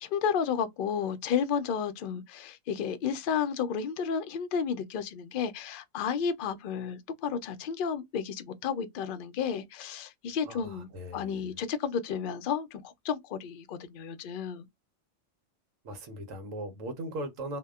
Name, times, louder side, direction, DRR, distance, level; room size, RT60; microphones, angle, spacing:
voice 1, 0.0-14.7, left 7 dB, 60° left, 0.6 m, -32 dB
voice 2, 10.5-11.5 15.8-17.6, right 1 dB, 80° right, 1.1 m, -39 dB
2.7 x 2.1 x 2.2 m
omnidirectional pair, 1.3 m